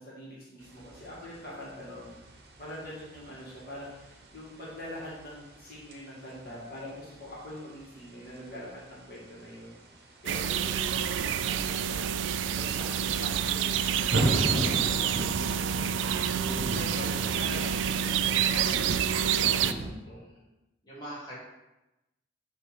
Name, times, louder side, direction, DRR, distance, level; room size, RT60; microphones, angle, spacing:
voice 1, 0.0-2.2 2.6-12.1 12.6-13.9 14.2-18.0 18.3-20.2, left 1 dB, 55° left, -6 dB, 1.9 m, -43 dB
sound 1, 0.6-19.9, right 1 dB, 55° right, 0.8 m, -38 dB
sound 2, 10.3-19.7, right 9 dB, 85° right, 0.3 m, -28 dB
voice 2, 20.0-20.5 20.8-21.4, equal, 20° left, -8 dB, 1.8 m, -43 dB
6.7 x 3.2 x 5.1 m, 0.97 s
head